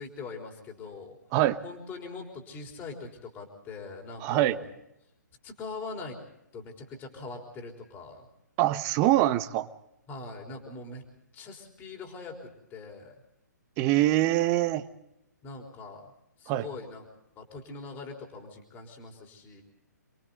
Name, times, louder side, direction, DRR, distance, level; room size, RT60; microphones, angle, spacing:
voice 1, 0.0-1.2 1.6-4.7 5.4-6.2 6.5-8.3 10.1-11.0 11.3-13.2 15.4-16.0 16.4-17.1 17.4-19.6, left 3 dB, 20° left, 2 dB, 4.0 m, -42 dB
voice 2, 4.2-4.6 8.6-9.7 13.8-14.9 16.5-16.7, right 15 dB, 25° right, 10 dB, 1.2 m, -24 dB
29.5 x 22.5 x 3.9 m, 0.82 s
figure-of-eight pair, 130°, 10 cm